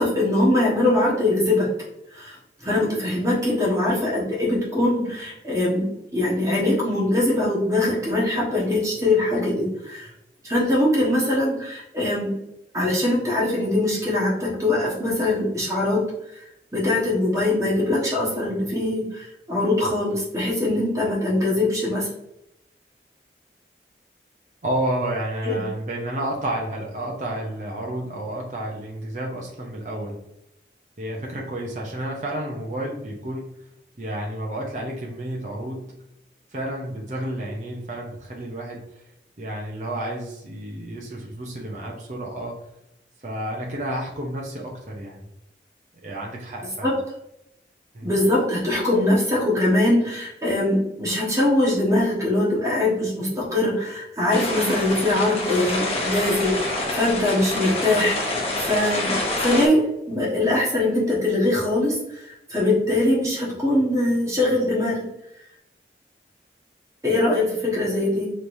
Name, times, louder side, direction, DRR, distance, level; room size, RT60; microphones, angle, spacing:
voice 1, 0.0-1.7 2.1-5.9 6.1-10.1 10.4-12.4 12.7-16.0 16.7-22.1 25.4-25.6 46.8-46.9 48.0-58.2 58.6-65.1 67.0-68.3, left 1 dB, 20° right, -4 dB, 1.2 m, -22 dB
voice 2, 24.6-30.2 31.0-33.5 34.0-36.0 36.5-39.0 39.4-42.6 43.2-45.3 46.0-46.9 47.9-48.1, right 1 dB, 45° right, -2 dB, 0.8 m, -31 dB
sound 1, 54.3-59.7, left 2 dB, 35° left, 0.8 m, -27 dB
5.1 x 3.2 x 2.6 m, 0.83 s
head